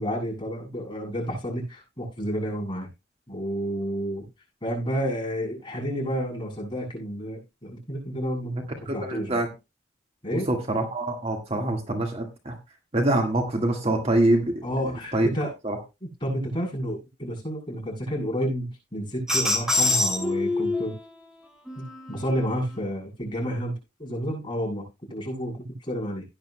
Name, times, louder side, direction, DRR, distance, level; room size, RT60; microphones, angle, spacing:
voice 1, 0.0-2.9 3.3-4.3 4.6-8.6 8.9-9.4 10.2-10.5 14.6-15.5 16.0-20.9 21.8-23.7 24.0-26.2, equal, 25° left, -2 dB, 7.0 m, -30 dB
voice 2, 8.9-9.5 10.3-12.5 12.9-14.5 15.1-15.3 15.6-15.8, right 1 dB, 35° right, 3 dB, 1.7 m, -24 dB
sound 1, 19.3-21.0 21.7-22.8, left 2 dB, 5° right, 2.8 m, -26 dB
17.0 x 10.5 x 2.2 m, 0.26 s
head